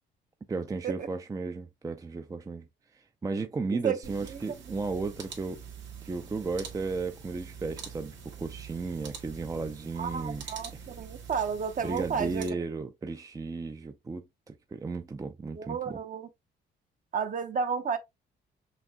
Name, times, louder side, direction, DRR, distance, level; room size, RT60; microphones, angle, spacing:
voice 1, 0.5-2.7 2.9-5.6 6.0-10.8 11.8-14.2 14.5-16.0, right 4 dB, 15° right, 0.4 m, -35 dB
sound 1, 4.0-12.5, right 7 dB, 70° right, 1.6 m, -45 dB
voice 2, 4.3-4.7 10.0-12.6 15.5-16.3 17.1-18.0, right 6 dB, 40° right, 0.8 m, -32 dB
6.1 x 2.6 x 2.2 m
cardioid pair, 90°, 20 cm